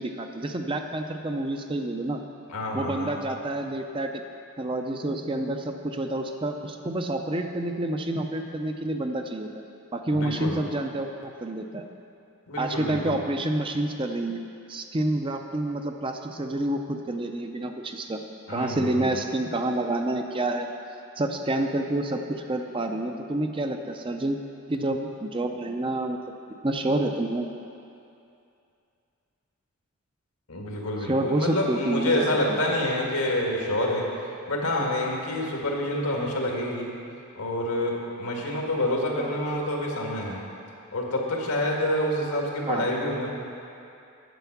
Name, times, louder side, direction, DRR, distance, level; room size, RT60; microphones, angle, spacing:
voice 1, 0.0-2.2 2.7-4.1 4.6-9.5 9.9-11.8 12.6-14.4 14.7-18.2 18.5-20.7 21.2-24.4 24.7-26.2 26.6-27.5 31.1-32.3 39.2-39.3 42.7-42.9, right 1 dB, 25° right, 5 dB, 0.5 m, -28 dB
voice 2, 2.5-3.1 10.1-10.6 12.5-13.2 18.5-19.2 30.5-34.1 34.5-36.9 37.4-40.4 40.9-43.3, left 1 dB, 85° left, -1 dB, 1.8 m, -27 dB
9.1 x 8.0 x 5.9 m, 2.6 s
head